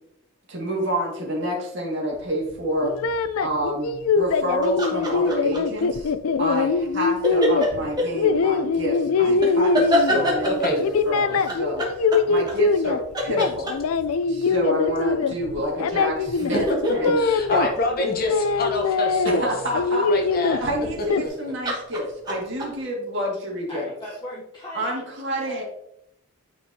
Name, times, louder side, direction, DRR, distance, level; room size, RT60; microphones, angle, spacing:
voice 1, 0.5-2.9 3.4-6.1 6.4-12.0 12.3-13.7 14.3-17.2 17.5-17.7 19.2-20.1 20.6-23.9 24.7-25.6, equal, 55° right, -3 dB, 2.1 m, -28 dB
sound 1, 2.8-10.4 10.8-13.0 13.3-17.7 18.0-19.4 19.7-21.3, left 4 dB, 80° left, 0.4 m, -23 dB
sound 2, 4.6-5.8 7.2-8.1 9.4-10.8 11.5-12.9 13.1-14.1 15.9-18.6 21.0-21.3 21.6-22.7, equal, 20° right, 1.2 m, -25 dB
voice 2, 10.5-10.8 17.2-19.5 20.1-20.6 21.2-21.3, left 1 dB, 40° left, 2 dB, 1.0 m, -26 dB
voice 3, 23.7-25.0 25.4-25.6, left 1 dB, 20° left, -6 dB, 1.0 m, -38 dB
9.0 x 4.6 x 2.8 m, 0.78 s
head